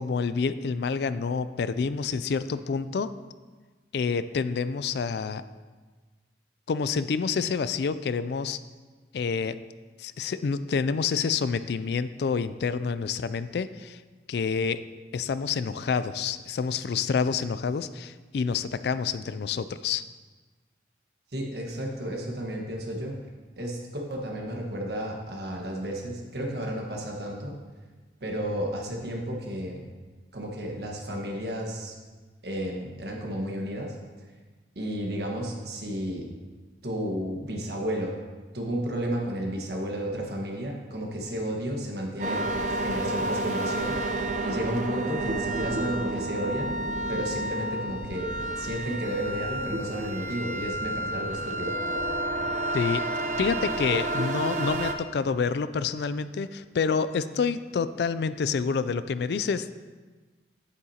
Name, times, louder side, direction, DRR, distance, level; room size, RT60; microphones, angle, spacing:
voice 1, 0.0-3.1 3.9-5.4 6.7-8.6 9.1-9.6 10.0-14.0 14.3-14.8 15.1-20.0 52.7-53.0 53.4-59.7, left 5 dB, 65° left, 13 dB, 0.3 m, -28 dB
voice 2, 21.3-23.2 23.6-27.5 28.2-29.8 30.3-31.9 32.4-34.0 34.7-36.2 36.8-38.2 38.5-46.8 47.1-51.7, equal, 60° right, 0 dB, 1.5 m, -32 dB
sound 1, 42.2-54.9, right 1 dB, 40° right, 0.6 m, -30 dB
9.7 x 8.5 x 2.9 m, 1.4 s
head